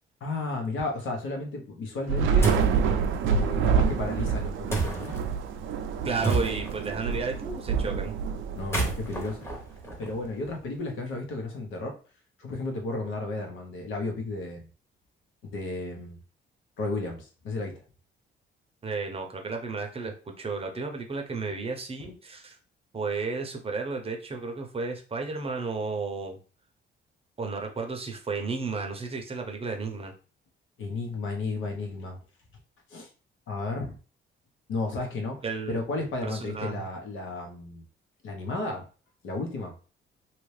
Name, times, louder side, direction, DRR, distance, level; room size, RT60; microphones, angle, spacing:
voice 1, 0.2-2.6 3.3-5.1 8.6-9.5 10.0-12.0 12.4-14.7 15.4-16.2 16.8-17.8 30.8-32.2 32.9-33.1 33.5-34.0 34.7-37.8 38.2-38.9 39.2-39.7, left 2 dB, 80° left, 2 dB, 1.0 m, -33 dB
Thunder / Rain, 2.1-9.6, right 6 dB, 75° right, 0.4 m, -27 dB
sound 1, 2.4-2.8 4.7-5.2 6.2-6.9 8.5-10.5, right 3 dB, 10° left, 1.0 m, -30 dB
voice 2, 6.0-8.2 18.8-22.6 22.9-26.4 27.4-30.1 35.4-36.8, right 4 dB, 30° right, 3 dB, 0.7 m, -33 dB
2.9 x 2.5 x 3.2 m, 0.36 s
cardioid pair, 105°, 20 cm